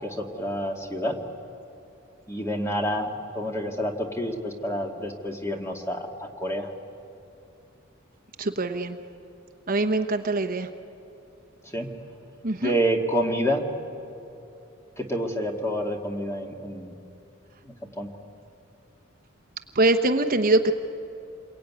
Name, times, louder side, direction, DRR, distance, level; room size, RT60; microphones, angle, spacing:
voice 1, 0.0-1.2 2.3-6.7 11.6-12.0 12.6-13.6 15.0-16.9 17.6-18.1, equal, 15° left, 2 dB, 2.1 m, -28 dB
voice 2, 8.4-9.0 9.7-10.7 12.4-12.7 19.7-20.7, right 2 dB, 45° right, 6 dB, 1.0 m, -23 dB
28.0 x 22.0 x 9.6 m, 2.9 s
head